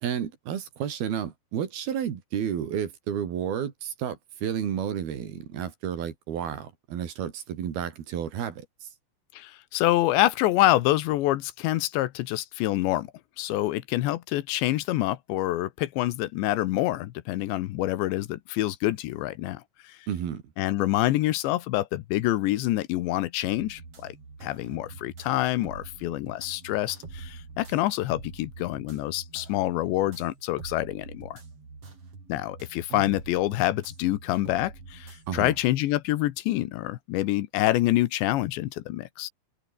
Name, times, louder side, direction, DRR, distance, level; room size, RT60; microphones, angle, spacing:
voice 1, 0.0-8.9 20.1-20.4 32.9-33.0 35.3-35.6, right 9 dB, 60° right, 4.1 m, -31 dB
voice 2, 9.3-13.1 13.4-20.0 20.6-24.2 24.4-31.4 32.3-39.3, left 16 dB, 80° left, 3.3 m, -26 dB
sound 1, 23.4-35.3, right 4 dB, 35° right, 5.8 m, -45 dB
omnidirectional pair, 5.1 m